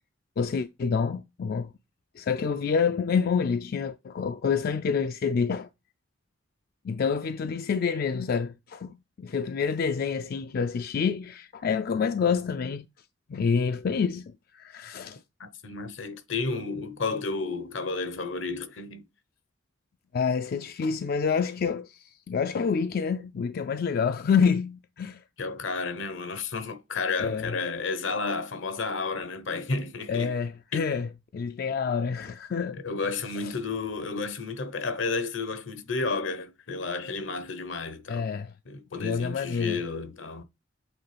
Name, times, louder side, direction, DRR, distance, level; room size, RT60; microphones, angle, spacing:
voice 1, 0.4-1.7 2.2-5.7 6.8-12.9 13.3-15.2 20.1-25.2 27.2-27.5 30.1-32.8 33.4-33.6 38.1-38.5 38.9-39.8, left 6 dB, 50° left, 0.3 m, -28 dB
voice 2, 15.4-19.1 25.4-30.3 30.7-30.9 32.8-38.3 38.7-40.4, left 4 dB, 75° left, 0.9 m, -32 dB
8.0 x 3.6 x 3.3 m
head